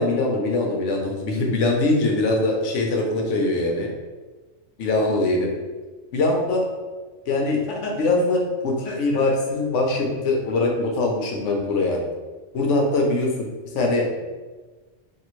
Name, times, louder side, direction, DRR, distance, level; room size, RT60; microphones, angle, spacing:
voice 1, 0.0-3.9 4.8-5.6 6.1-6.7 7.3-12.1 12.5-13.5 13.7-14.1, left 2 dB, 75° left, 1 dB, 1.0 m, -22 dB
3.5 x 2.4 x 3.0 m, 1.3 s
omnidirectional pair, 1.3 m